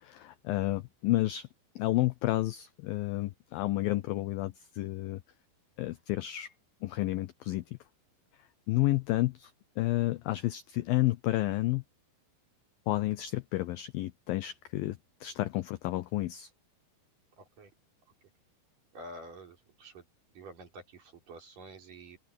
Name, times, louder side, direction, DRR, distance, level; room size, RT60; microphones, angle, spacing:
voice 1, 0.0-1.5 1.8-5.2 5.8-6.5 6.8-7.6 8.7-9.5 9.8-11.8 12.9-16.5, left 17 dB, 80° left, 2.1 m, -31 dB
voice 2, 17.4-17.7 18.9-20.0 20.4-22.2, right 2 dB, 50° right, 6.0 m, -48 dB
open air
omnidirectional pair, 5.0 m